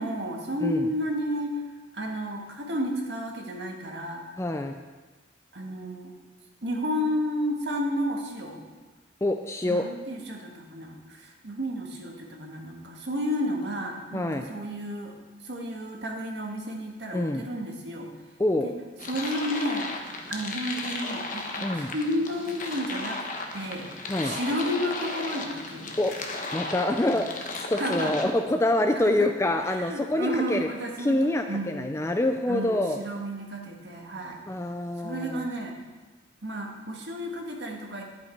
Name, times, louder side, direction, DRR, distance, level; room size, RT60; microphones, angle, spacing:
voice 1, 0.0-1.6 1.9-4.2 5.5-6.2 6.6-8.7 9.6-15.1 15.4-18.1 18.6-18.7 19.1-19.9 20.3-25.9 27.0-27.2 27.8-28.3 28.9-29.3 29.7-31.9 32.5-34.4 35.0-35.8 36.4-38.0, equal, 65° right, 1 dB, 1.7 m, -32 dB
voice 2, 4.4-4.8 9.2-9.9 14.1-14.5 17.1-17.4 18.4-18.7 21.6-21.9 24.1-24.4 26.0-26.1 26.5-30.7 31.0-33.0 34.5-35.5, left 1 dB, 15° left, 6 dB, 0.4 m, -26 dB
sound 1, 19.0-28.2, left 2 dB, 45° left, 1.1 m, -35 dB
10.5 x 8.7 x 4.6 m, 1.3 s
head